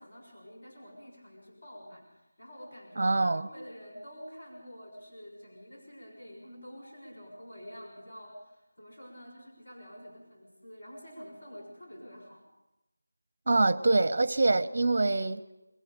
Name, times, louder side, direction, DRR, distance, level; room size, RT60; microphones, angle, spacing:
voice 1, 0.0-12.4, equal, 50° left, -1 dB, 6.4 m, -48 dB
voice 2, 3.0-3.5 13.5-15.4, right 2 dB, 35° right, 17 dB, 0.7 m, -25 dB
25.5 x 21.5 x 5.2 m, 0.98 s
figure-of-eight pair, 165°, 0 cm